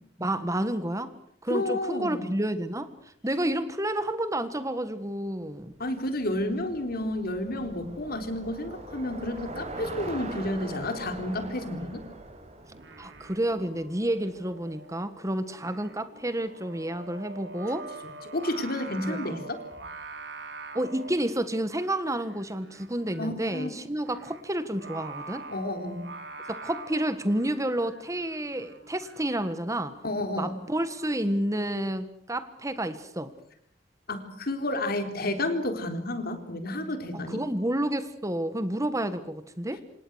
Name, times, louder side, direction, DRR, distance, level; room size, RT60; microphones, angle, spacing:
voice 1, 0.2-1.1 1.4-2.9 3.2-5.7 13.0-17.9 19.0-19.4 20.7-25.5 26.5-29.9 30.4-33.3 37.1-39.8, right 1 dB, 15° right, 11 dB, 1.5 m, -30 dB
voice 2, 1.5-2.3 5.8-12.0 18.3-19.6 23.2-23.7 25.5-26.0 30.0-30.6 34.1-37.4, left 1 dB, 55° left, 7 dB, 3.9 m, -31 dB
Bicycle, 5.7-14.1, right 2 dB, 35° right, 5.1 m, -42 dB
Singing, 12.7-31.2, right 3 dB, 65° right, 3.9 m, -45 dB
27.5 x 27.0 x 6.4 m, 0.69 s
head